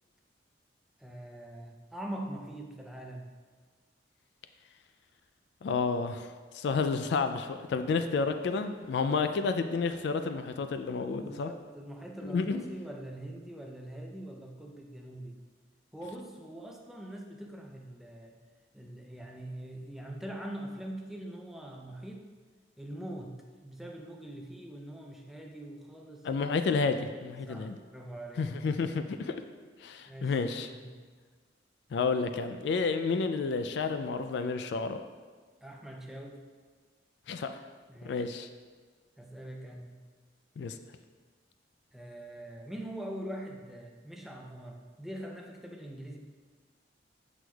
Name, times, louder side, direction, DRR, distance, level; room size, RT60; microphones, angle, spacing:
voice 1, 1.0-3.3 7.8-8.0 11.1-15.4 15.9-18.4 18.7-22.3 22.8-23.4 23.6-26.3 27.5-28.6 30.1-30.3 30.7-31.0 35.6-36.4 37.9-38.3 39.2-39.9 41.9-46.2, right 1 dB, ahead, 0 dB, 0.5 m, -43 dB
voice 2, 5.6-11.5 12.2-12.6 26.2-27.8 28.4-29.4 29.8-30.7 31.9-35.0 37.3-37.6 38.0-38.5 40.6-40.8, left 4 dB, 65° left, 9 dB, 0.3 m, -30 dB
7.7 x 6.1 x 2.3 m, 1.5 s
head